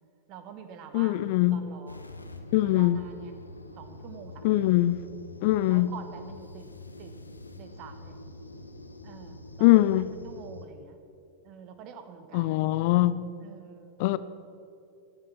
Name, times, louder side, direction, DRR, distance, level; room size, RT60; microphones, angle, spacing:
voice 1, 0.3-1.2 1.5-2.0 2.6-3.3 3.8-4.8 5.7-6.7 7.0-7.1 7.6-8.2 9.0-9.7 10.2-11.0 11.4-12.7 13.4-14.0, right 7 dB, 40° right, 1.5 m, -46 dB
voice 2, 0.9-1.6 2.5-3.0 4.4-5.0 5.4-5.9 9.6-10.1 12.3-13.1 14.0-14.2, left 16 dB, 50° left, 0.5 m, -22 dB
sound 1, 1.9-10.7, left 2 dB, 80° left, 1.0 m, -45 dB
16.0 x 11.5 x 5.9 m
figure-of-eight pair, 90°, 0 cm